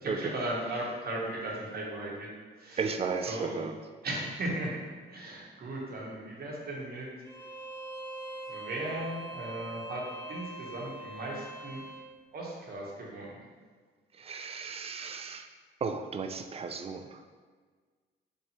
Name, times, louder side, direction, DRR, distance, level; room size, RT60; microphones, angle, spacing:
voice 1, 0.0-2.3 2.6-2.8 3.3-3.6 4.0-4.8 5.1-7.1 8.5-11.8 12.3-13.3, right 1 dB, 50° right, -3 dB, 1.1 m, -36 dB
voice 2, 2.8-3.7 14.1-15.5 15.8-17.2, right 5 dB, 30° right, 6 dB, 0.3 m, -34 dB
Bowed string instrument, 7.2-12.1, right 2 dB, 15° left, 1.2 m, -43 dB
3.3 x 2.8 x 4.2 m, 1.5 s
cardioid pair, 90°, 20 cm